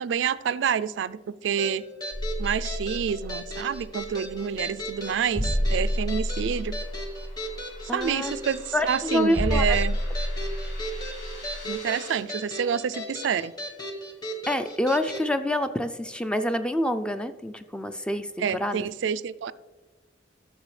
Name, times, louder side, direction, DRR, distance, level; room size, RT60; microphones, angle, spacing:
voice 1, 0.0-1.8 2.4-6.8 7.9-10.0 11.6-13.5 18.4-19.5, right 7 dB, 75° right, 17 dB, 0.3 m, -28 dB
sound 1, 1.6-15.3, equal, 20° left, 1.2 m, -37 dB
sound 2, 2.1-11.7, equal, 50° left, 2.3 m, -30 dB
sound 3, 4.4-12.2, left 2 dB, 80° left, 3.3 m, -48 dB
voice 2, 7.9-8.3 8.7-9.8 14.5-18.9, left 1 dB, 5° left, 10 dB, 0.4 m, -27 dB
13.0 x 6.7 x 3.2 m, 1.2 s
head